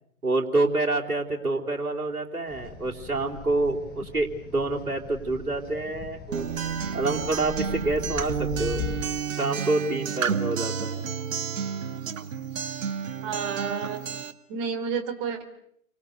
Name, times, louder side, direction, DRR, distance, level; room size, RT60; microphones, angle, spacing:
voice 1, 0.2-4.3 4.5-6.5 6.9-8.8 9.3-11.0, right 2 dB, 85° right, 0 dB, 3.6 m, -27 dB
sound 1, 2.5-9.1, left 8 dB, 20° left, 4.0 m, -39 dB
Acoustic guitar, 6.3-14.3, right 7 dB, 60° right, 2.0 m, -31 dB
voice 2, 13.2-14.1 14.5-15.4, right 6 dB, 35° right, 6 dB, 4.1 m, -30 dB
30.0 x 24.5 x 6.7 m, 0.70 s
figure-of-eight pair, 120°, 44 cm